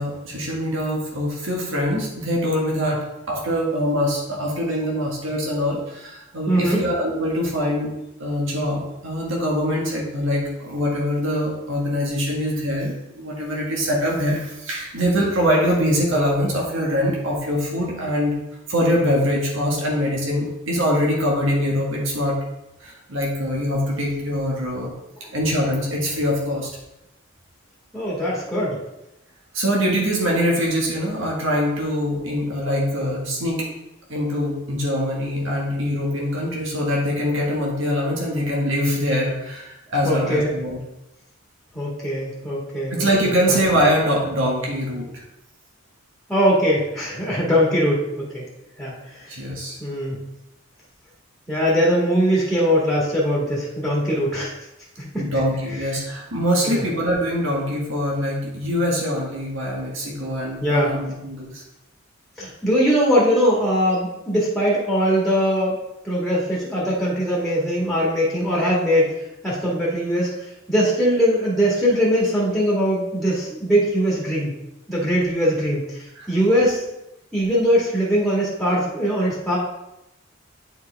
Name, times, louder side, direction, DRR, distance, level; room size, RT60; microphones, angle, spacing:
voice 1, 0.0-3.0 3.3-7.9 8.2-18.4 18.7-22.4 22.8-24.9 25.3-26.7 29.5-33.6 34.1-40.8 42.9-45.2 49.3-49.8 55.1-61.6 76.1-76.3, equal, 70° right, -3 dB, 1.7 m, -23 dB
voice 2, 6.5-6.8 27.9-28.8 40.0-40.5 41.7-43.6 46.3-48.4 48.8-49.3 49.8-50.2 51.5-54.5 55.0-55.2 56.6-56.8 60.6-60.9 62.4-65.8 66.0-69.2 69.4-70.3 70.7-74.6 74.9-76.8 77.3-79.6, equal, ahead, -5 dB, 1.6 m, -21 dB
8.4 x 4.7 x 3.4 m, 0.90 s
head